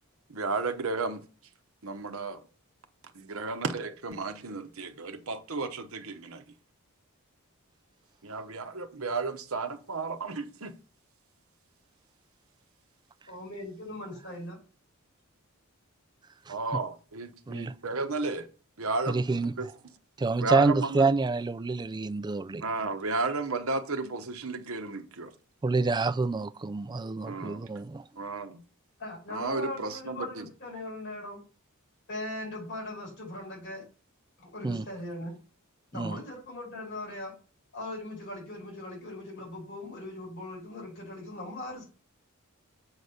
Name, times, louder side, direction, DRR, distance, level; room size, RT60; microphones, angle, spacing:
voice 1, 0.3-1.2 1.8-2.4 3.1-6.4 8.2-10.7 16.5-18.5 18.8-19.2 19.6-19.7 20.4-21.1 22.6-25.3 27.2-27.7 28.2-28.6 29.3-30.4, right 3 dB, 70° right, 1.0 m, -33 dB
voice 2, 13.3-14.6 27.2-27.5 29.0-31.4 32.1-33.9 34.4-35.3 35.9-37.3 37.7-41.8, left 1 dB, 55° left, 5.2 m, -39 dB
voice 3, 19.1-19.5 20.2-22.6 25.6-28.0 34.6-34.8 35.9-36.2, right 3 dB, 20° right, 0.3 m, -27 dB
7.9 x 4.1 x 6.5 m
head